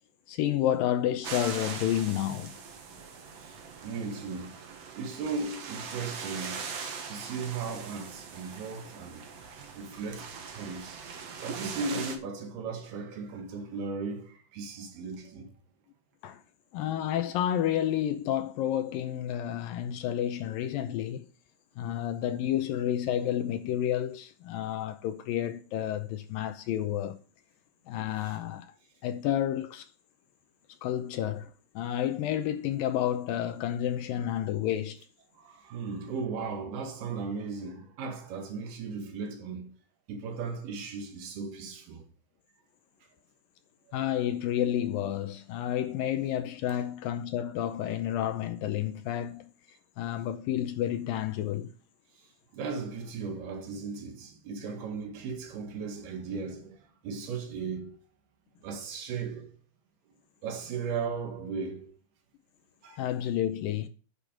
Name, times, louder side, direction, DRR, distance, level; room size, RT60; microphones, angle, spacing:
voice 1, 0.3-2.6 16.2-16.4 16.7-21.3 21.8-27.2 27.9-28.7 29.0-29.9 30.8-35.0 43.9-49.5 50.0-51.7 63.0-63.9, left 11 dB, 75° left, 2.3 m, -30 dB
sound 1, 1.2-12.2, right 6 dB, 55° right, 2.1 m, -41 dB
voice 2, 3.8-4.6 5.0-6.7 7.0-9.3 9.8-11.0 11.4-15.5 28.2-28.4 35.3-39.7 40.1-42.1 52.5-58.0 58.6-59.6 60.4-62.0 62.8-63.0, right 4 dB, 75° right, 3.8 m, -36 dB
10.0 x 6.9 x 5.0 m
omnidirectional pair, 4.5 m